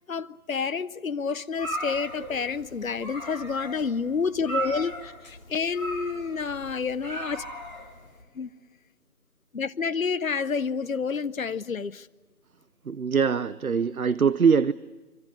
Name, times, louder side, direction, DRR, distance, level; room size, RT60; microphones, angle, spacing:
voice 1, 0.1-7.4 8.4-8.5 9.5-12.1, left 5 dB, 65° left, 0.8 m, -29 dB
sound 1, 1.5-8.2, right 2 dB, 30° left, 3.1 m, -37 dB
voice 2, 12.9-14.7, right 6 dB, 70° right, 0.7 m, -22 dB
25.0 x 24.0 x 8.6 m
figure-of-eight pair, 175°, 44 cm